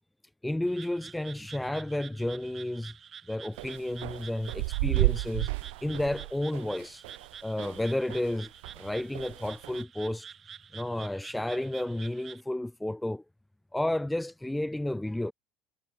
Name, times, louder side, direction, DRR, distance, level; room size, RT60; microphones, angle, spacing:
voice 1, 0.4-2.9 3.3-5.5 5.8-7.0 7.4-10.3 10.7-13.2 13.7-15.3, left 1 dB, 5° left, 1.8 m, -32 dB
Frog, 0.7-12.4, right 8 dB, 35° right, 2.9 m, -48 dB
sound 1, 3.6-8.3 8.6-9.8, right 26 dB, 85° right, 1.4 m, -32 dB
supercardioid pair, 120°, 0 cm